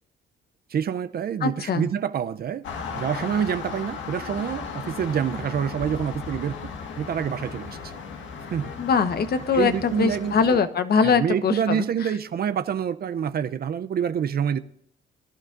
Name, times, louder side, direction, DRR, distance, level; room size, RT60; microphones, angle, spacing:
voice 1, 0.7-2.6 2.9-6.5 7.0-7.9 8.5-8.7 9.5-10.6 11.0-14.6, right 8 dB, 50° right, 0.6 m, -27 dB
voice 2, 1.4-1.9 8.8-12.1, left 6 dB, 55° left, 1.2 m, -22 dB
sound 1, 2.6-10.6, left 5 dB, 75° left, 1.7 m, -36 dB
22.0 x 11.5 x 2.6 m
cardioid pair, 90°, 20 cm